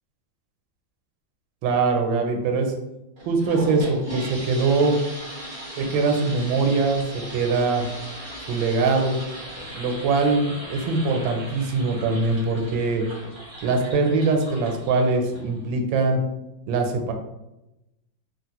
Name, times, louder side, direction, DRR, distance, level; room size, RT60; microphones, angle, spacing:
voice 1, 1.6-2.7 3.3-5.0 5.8-7.0 7.3-7.8 8.5-9.2 9.8-13.0 13.6-16.2 16.7-17.1, right 3 dB, 85° right, 4 dB, 1.3 m, -22 dB
sound 1, 3.2-15.7, equal, 45° right, 0.3 m, -37 dB
3.3 x 2.4 x 2.8 m, 0.94 s
omnidirectional pair, 2.1 m